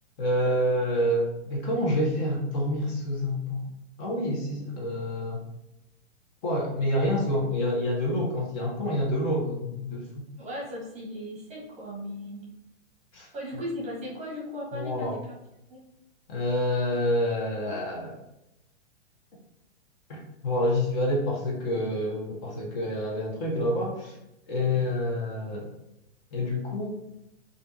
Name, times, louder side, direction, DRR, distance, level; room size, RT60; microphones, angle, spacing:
voice 1, 0.2-3.7 4.0-5.4 6.4-10.3 13.1-13.3 14.7-15.2 16.3-18.2 20.1-24.2 24.5-25.7 26.3-26.9, left 1 dB, 40° left, -2 dB, 0.9 m, -27 dB
voice 2, 10.4-12.5 13.3-15.2 15.7-15.8, equal, 20° right, -4 dB, 1.1 m, -37 dB
3.4 x 2.5 x 2.7 m, 0.87 s
hypercardioid pair, 130°, 35 cm